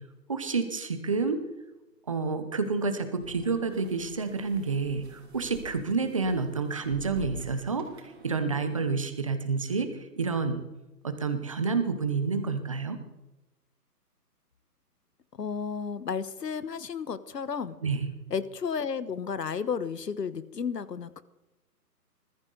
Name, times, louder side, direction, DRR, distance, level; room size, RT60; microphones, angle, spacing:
voice 1, 0.3-1.4 2.1-7.9 8.2-9.9 10.2-10.6 11.0-13.0 17.8-18.1, right 4 dB, 20° right, 9 dB, 0.9 m, -29 dB
sound 1, 3.2-8.9, right 1 dB, 40° right, 3.4 m, -47 dB
voice 2, 15.3-17.8 18.3-21.2, left 6 dB, 80° left, 16 dB, 1.3 m, -33 dB
21.0 x 14.5 x 4.0 m, 0.98 s
hypercardioid pair, 170°, 48 cm